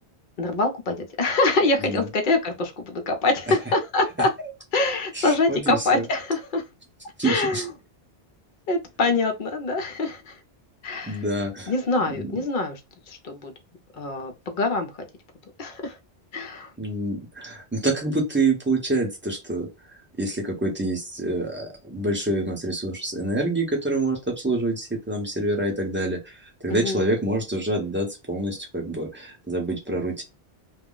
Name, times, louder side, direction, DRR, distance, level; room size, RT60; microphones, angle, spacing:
voice 1, 0.4-4.3 4.7-6.6 7.2-7.7 8.7-10.4 10.8-11.2 11.7-12.8 13.1-13.5 13.9-15.1 15.6-16.0 16.3-16.7 26.7-27.1, left 3 dB, 55° left, 0.7 m, -24 dB
voice 2, 5.1-6.1 7.2-7.6 11.0-11.7 12.1-12.3 16.8-30.2, right 2 dB, 10° right, 0.7 m, -27 dB
2.3 x 2.1 x 3.7 m
omnidirectional pair, 1.1 m